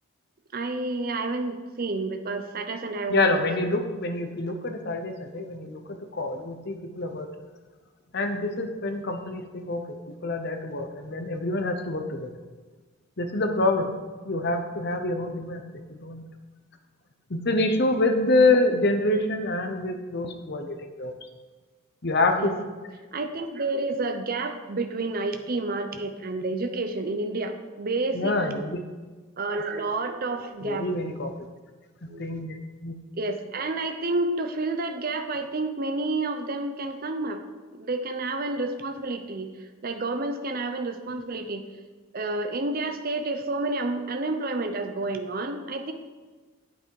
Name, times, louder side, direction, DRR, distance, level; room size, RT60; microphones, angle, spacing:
voice 1, 0.5-3.4 22.4-22.5 23.1-28.6 29.4-30.9 32.1-32.6 33.2-37.4 37.7-41.6 42.1-45.9, right 2 dB, 40° right, 6 dB, 0.7 m, -30 dB
voice 2, 3.1-7.3 8.1-10.0 10.2-12.3 13.2-13.9 14.2-15.6 15.9-16.2 17.3-21.1 22.0-22.6 28.1-28.8 30.6-31.3 32.2-32.6 32.8-32.9, left 2 dB, 50° left, 6 dB, 0.9 m, -26 dB
8.4 x 8.3 x 4.8 m, 1.3 s
head